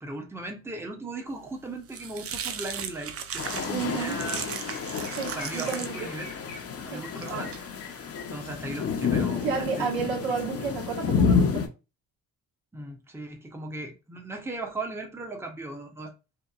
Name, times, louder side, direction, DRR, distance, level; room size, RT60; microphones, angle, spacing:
voice 1, 0.0-4.4 5.3-6.3 6.8-7.5 8.1-10.2 12.7-16.1, right 2 dB, 5° right, 0.7 m, -37 dB
sound 1, 1.4-9.6, right 7 dB, 40° right, 0.4 m, -39 dB
sound 2, 3.4-11.7, left 6 dB, 40° left, 0.6 m, -29 dB
voice 2, 3.7-4.2 5.1-6.1 6.9-7.0 7.3-7.4 9.4-11.7, right 6 dB, 90° right, 1.2 m, -31 dB
Chirp tweet, 3.9-4.1 4.3-8.9, left 5 dB, 65° left, 1.0 m, -46 dB
2.9 x 2.2 x 2.3 m
cardioid pair, 85°, 36 cm